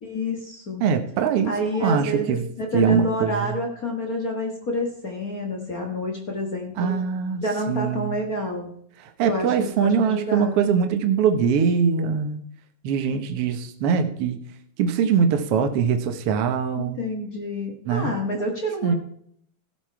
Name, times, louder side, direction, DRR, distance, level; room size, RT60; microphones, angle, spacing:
voice 1, 0.0-0.8 1.4-6.9 7.4-8.7 9.2-10.6 16.8-18.9, left 1 dB, 45° left, 2 dB, 1.2 m, -28 dB
voice 2, 0.8-2.4 2.7-3.5 6.8-8.2 9.2-12.4 12.8-14.4 14.8-17.0 17.9-18.1 18.8-18.9, right 6 dB, 70° right, 7 dB, 1.4 m, -22 dB
15.0 x 8.4 x 4.6 m, 0.66 s
omnidirectional pair, 4.0 m